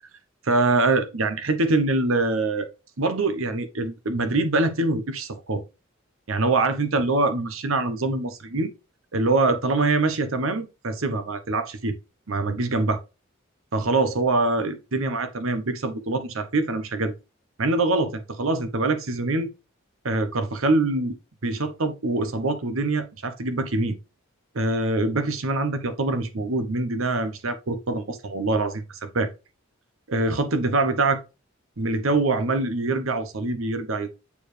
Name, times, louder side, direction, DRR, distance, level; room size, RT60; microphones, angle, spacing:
voice 1, 0.4-2.7 3.0-5.6 6.3-8.7 9.1-12.0 12.3-13.0 13.7-17.1 17.6-19.5 20.0-21.2 21.4-24.0 24.5-29.3 30.1-31.2 31.8-34.1, right 2 dB, 75° right, 0.9 m, -24 dB
7.0 x 4.6 x 3.2 m
head